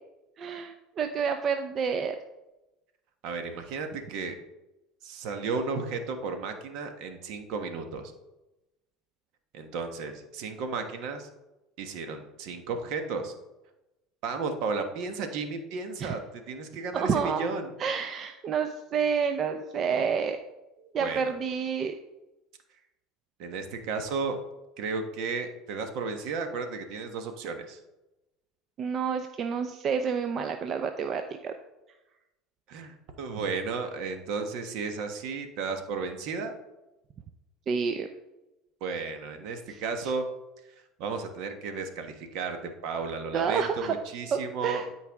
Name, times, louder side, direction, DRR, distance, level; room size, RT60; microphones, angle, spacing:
voice 1, 0.4-2.1 16.0-16.1 16.9-17.4 17.8-20.4 20.9-21.9 28.8-31.5 37.7-38.1 39.7-39.8 43.3-44.0 44.3-44.9, right 6 dB, 45° right, 7 dB, 0.6 m, -29 dB
voice 2, 3.2-4.4 5.0-8.1 9.5-11.3 11.8-13.3 14.2-17.7 21.0-21.2 23.4-24.4 24.8-27.8 32.7-36.6 38.8-40.3 41.0-44.8, right 4 dB, 65° right, 6 dB, 1.3 m, -33 dB
12.5 x 4.6 x 3.6 m, 0.98 s
hypercardioid pair, 90°, 0 cm